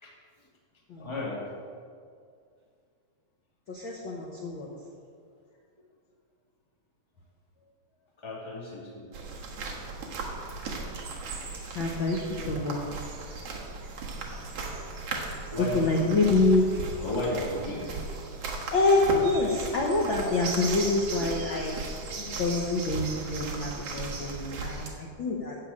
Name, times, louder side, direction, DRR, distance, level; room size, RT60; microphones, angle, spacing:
voice 1, 1.0-1.4 8.2-9.0 15.5-16.2 17.0-17.9 20.2-20.4 21.2-21.3 22.1-22.3, left 1 dB, 10° left, -4 dB, 1.8 m, -34 dB
voice 2, 3.7-4.7 11.7-12.2 12.5-12.8 15.7-16.7 18.7-21.8 22.4-25.6, left 2 dB, 65° left, -2 dB, 1.2 m, -26 dB
sound 1, 9.1-24.9, right 3 dB, 55° right, 2.2 m, -37 dB
14.0 x 5.1 x 8.5 m, 2.2 s
omnidirectional pair, 3.8 m